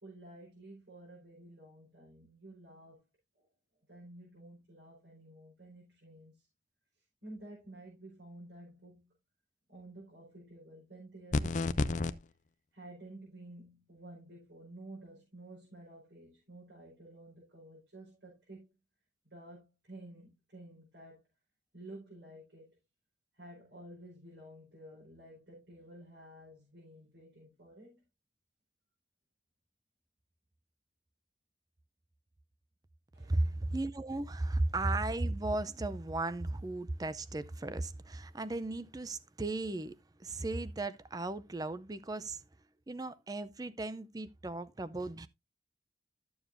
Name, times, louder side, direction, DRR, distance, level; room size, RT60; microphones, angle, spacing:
voice 1, 0.0-3.0 3.4-3.5 3.9-6.5 7.2-9.1 9.7-12.2 12.7-18.8 19.2-21.2 21.7-22.7 23.3-28.0 33.1-33.6, right 1 dB, 85° right, 4.7 m, -52 dB
sound 1, 11.3-12.1, left 3 dB, 45° left, 0.5 m, -30 dB
voice 2, 33.3-39.9 40.2-42.4 42.9-45.3, right 2 dB, 20° right, 0.5 m, -35 dB
12.5 x 7.1 x 2.6 m
head